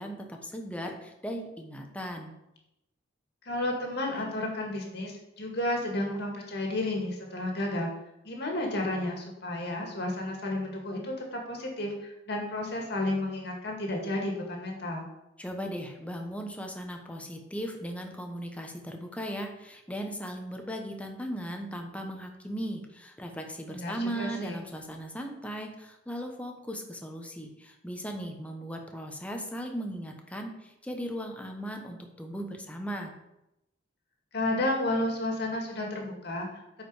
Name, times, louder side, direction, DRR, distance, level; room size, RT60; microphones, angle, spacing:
voice 1, 0.0-2.4 15.4-33.1, equal, 5° left, 3 dB, 1.0 m, -37 dB
voice 2, 3.5-7.9 8.2-15.1 23.7-24.6 34.3-36.5, left 1 dB, 60° left, 0 dB, 2.1 m, -32 dB
8.9 x 5.0 x 5.0 m, 0.88 s
head